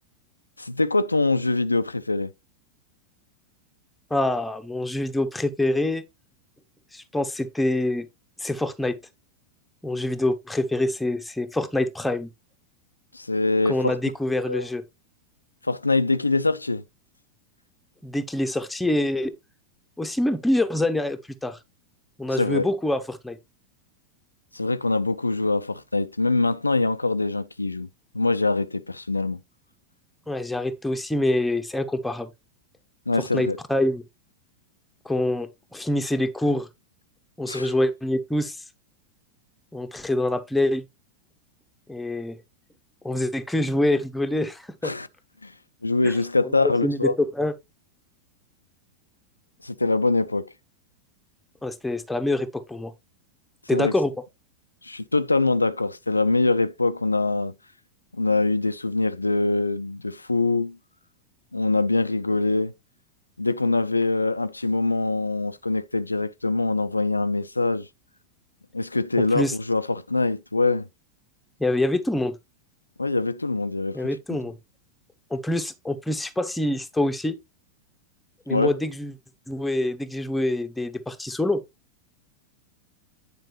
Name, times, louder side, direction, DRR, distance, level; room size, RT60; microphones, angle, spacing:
voice 1, 0.6-2.3 13.1-14.0 14.4-14.7 15.6-16.8 22.3-22.7 24.5-27.9 28.1-29.4 33.1-33.6 37.5-37.7 44.8-45.1 45.4-45.5 45.8-47.2 49.6-50.5 53.7-53.9 54.8-57.5 58.1-60.8 61.5-62.7 63.4-67.9 68.7-70.9 73.0-74.1 78.5-78.7, left 3 dB, 80° left, 0.5 m, -24 dB
voice 2, 4.1-6.0 6.9-8.1 8.4-9.0 9.8-12.3 13.7-14.8 18.0-19.3 20.0-21.6 22.2-23.4 30.3-32.3 33.3-34.0 35.0-36.7 37.4-38.6 39.7-40.8 41.9-42.4 43.0-44.9 46.0-46.1 46.6-47.5 51.6-52.9 53.7-54.1 69.2-69.5 71.6-72.4 73.9-74.6 75.3-77.3 78.5-79.1 79.5-81.6, left 1 dB, 5° left, 0.9 m, -25 dB
9.2 x 4.8 x 3.1 m
figure-of-eight pair, 90°, 0 cm